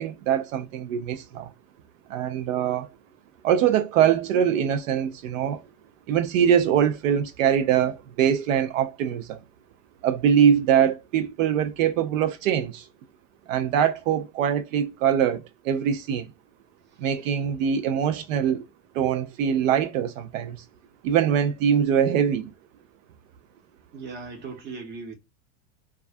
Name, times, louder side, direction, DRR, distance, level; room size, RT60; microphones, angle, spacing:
voice 1, 0.0-1.5 2.1-2.9 3.4-5.6 6.1-9.4 10.0-12.9 13.5-16.3 17.0-18.7 18.9-20.6 21.0-22.5, right 9 dB, 75° right, 0.5 m, -23 dB
voice 2, 23.9-25.1, right 4 dB, 25° right, 0.7 m, -38 dB
2.3 x 2.2 x 2.5 m
supercardioid pair, 130°, 40 cm